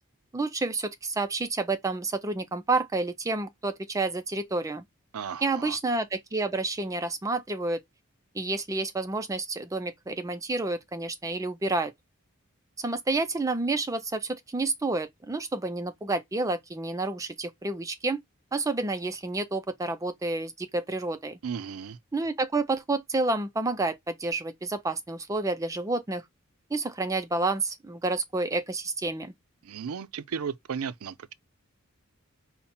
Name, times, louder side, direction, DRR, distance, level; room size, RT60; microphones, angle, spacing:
voice 1, 0.3-4.9 5.4-7.8 8.3-11.9 12.8-18.2 18.5-21.4 22.1-26.2 26.7-29.3, right 3 dB, 15° right, 0.3 m, -29 dB
voice 2, 5.1-5.8 21.4-22.0 29.6-31.3, right 6 dB, 75° right, 0.4 m, -35 dB
5.5 x 2.1 x 4.2 m
head